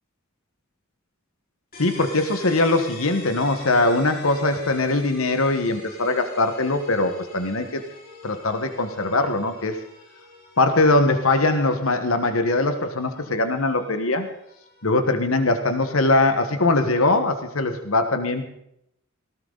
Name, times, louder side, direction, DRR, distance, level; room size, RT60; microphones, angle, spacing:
sound 1, 1.7-17.3, left 2 dB, 45° left, 5.0 m, -45 dB
voice 1, 1.8-7.8 8.2-9.7 10.6-14.3 14.8-18.5, left 2 dB, 75° left, 7 dB, 1.5 m, -21 dB
18.5 x 17.0 x 4.1 m, 0.75 s
head